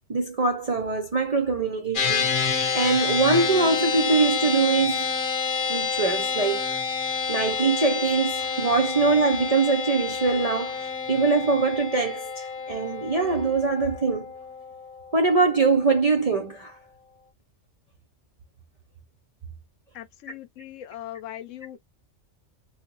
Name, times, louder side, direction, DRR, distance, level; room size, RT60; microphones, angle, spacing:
voice 1, 0.1-5.1 5.7-6.7 7.3-14.3 15.1-16.8, right 4 dB, 50° right, 0.4 m, -23 dB
sound 1, 1.9-15.5, left 5 dB, 45° left, 0.9 m, -28 dB
voice 2, 19.9-21.8, left 12 dB, 75° left, 0.9 m, -39 dB
3.5 x 2.4 x 2.9 m
omnidirectional pair, 1.3 m